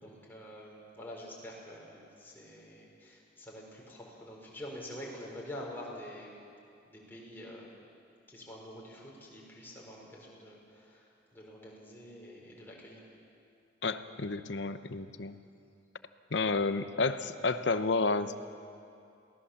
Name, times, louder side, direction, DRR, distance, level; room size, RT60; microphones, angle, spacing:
voice 1, 0.0-6.4 6.9-7.7 8.3-13.0, equal, 10° left, -3 dB, 4.4 m, -47 dB
voice 2, 13.8-15.4 16.3-18.4, left 3 dB, 65° left, 11 dB, 0.8 m, -31 dB
22.5 x 17.5 x 7.2 m, 2.5 s
head